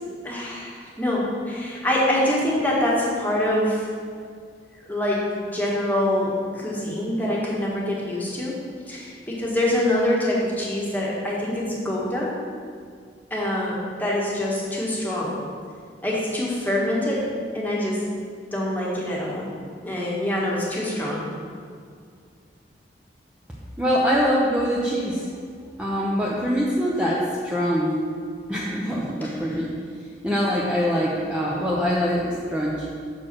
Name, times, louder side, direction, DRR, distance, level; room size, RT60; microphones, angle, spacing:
voice 1, 0.2-3.9 4.9-8.5 8.9-12.3 13.3-15.4 16.0-17.2 17.5-18.0 18.5-19.5 19.8-21.2 29.2-29.6, left 1 dB, 10° left, -5 dB, 1.4 m, -25 dB
voice 2, 23.8-25.3 25.8-28.0 28.5-29.7 30.2-32.9, equal, 5° right, -6 dB, 0.7 m, -23 dB
6.3 x 4.6 x 5.9 m, 2.1 s
head